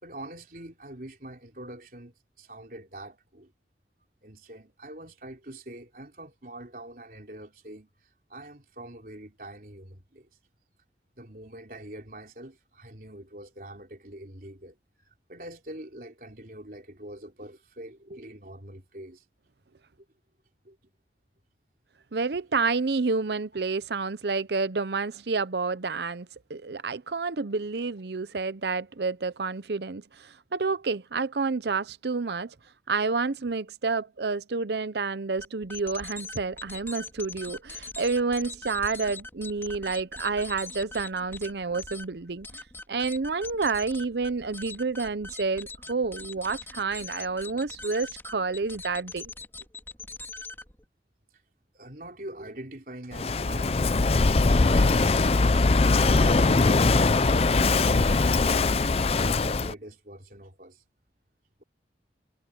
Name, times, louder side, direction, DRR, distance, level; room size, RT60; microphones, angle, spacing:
voice 1, 0.0-3.5 4.2-10.3 11.2-19.2 20.6-20.8 51.7-55.6 55.9-56.8 57.4-60.8, right 1 dB, 50° right, 4.0 m, -44 dB
voice 2, 22.1-32.5 32.9-42.5 42.9-49.2, right 4 dB, 70° right, 0.7 m, -29 dB
sound 1, 35.4-50.8, left 3 dB, 15° left, 3.9 m, -42 dB
Walk footsteps / Wind / Waves surf, 53.1-59.7, left 3 dB, 35° left, 0.5 m, -21 dB
head